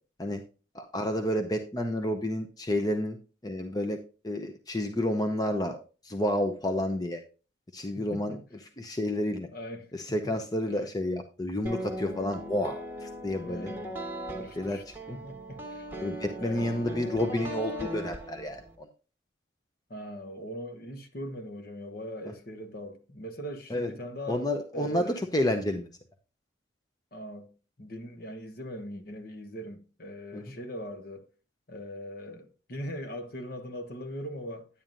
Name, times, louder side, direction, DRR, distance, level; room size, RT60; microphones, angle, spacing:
voice 1, 0.7-3.2 3.4-4.0 4.2-5.8 6.0-7.2 7.7-8.4 8.8-9.5 9.9-13.7 14.6-15.2 16.0-18.9 23.7-23.9 24.3-25.9 30.3-30.4, left 1 dB, 20° left, 0.6 m, -30 dB
voice 2, 9.5-9.9 13.4-14.0 14.3-14.8 15.1-15.9 16.4-17.0 19.9-24.5 24.7-25.2 27.1-31.3 31.7-34.7, equal, 50° left, 1.1 m, -40 dB
sound 1, 11.7-18.8, right 1 dB, 10° right, 1.4 m, -39 dB
10.0 x 9.0 x 2.6 m
head